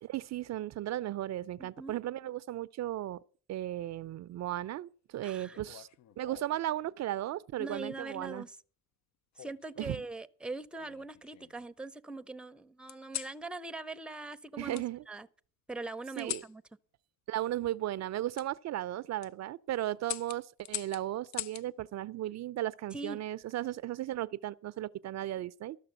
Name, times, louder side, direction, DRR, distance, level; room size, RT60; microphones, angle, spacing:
voice 1, 0.0-3.2 3.5-5.9 6.2-8.4 9.8-10.0 14.6-15.0 16.2-16.4 17.3-25.8, right 13 dB, 60° right, 0.5 m, -36 dB
voice 2, 1.6-1.9 5.2-5.6 7.6-8.6 9.4-15.3 15.7-16.6 22.9-23.2, right 2 dB, 5° right, 0.6 m, -42 dB
sound 1, 5.5-6.6 7.7-8.1 9.4-10.1 10.7-11.6 12.9-13.4 14.7-14.9 16.2-16.5 18.3-18.5 19.0-19.3 20.0-21.7 23.2-23.6, left 13 dB, 65° left, 0.5 m, -43 dB
13.0 x 6.5 x 7.9 m
cardioid pair, 90°, 30 cm